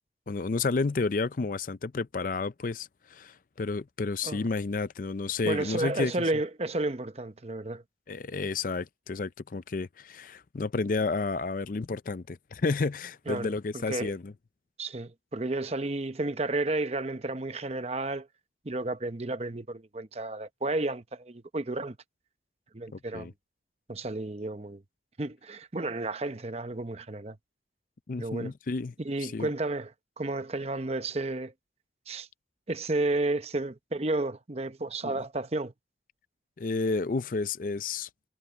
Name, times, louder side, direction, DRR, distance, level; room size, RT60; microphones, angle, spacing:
voice 1, 0.3-6.1 8.1-14.3 22.9-23.3 28.1-28.9 29.2-29.5 35.0-35.1 36.6-38.1, left 3 dB, 50° left, 0.5 m, -31 dB
voice 2, 5.4-7.8 13.3-13.5 13.9-14.1 14.8-18.3 18.6-22.0 22.7-23.3 23.9-24.8 25.2-27.4 28.2-28.5 29.0-29.9 30.2-31.5 32.1-32.3 32.7-35.7, right 2 dB, 35° right, 0.8 m, -32 dB
head